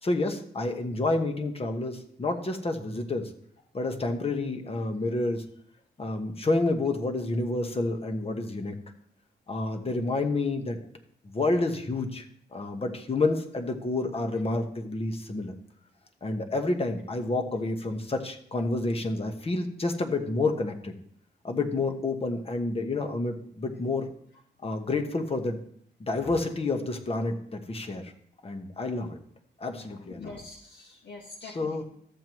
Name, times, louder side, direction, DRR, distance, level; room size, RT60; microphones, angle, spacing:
voice 1, 0.0-3.3 3.7-5.4 6.0-8.8 9.5-10.8 11.2-12.3 12.5-15.5 16.2-20.9 21.4-24.1 24.6-25.6 26.0-28.1 28.4-29.2 29.6-30.3 31.4-31.8, left 2 dB, 30° left, 5 dB, 1.2 m, -29 dB
voice 2, 29.9-31.8, left 4 dB, 70° left, -1 dB, 1.4 m, -45 dB
13.5 x 7.4 x 3.1 m, 0.66 s
cardioid pair, 100°, 18 cm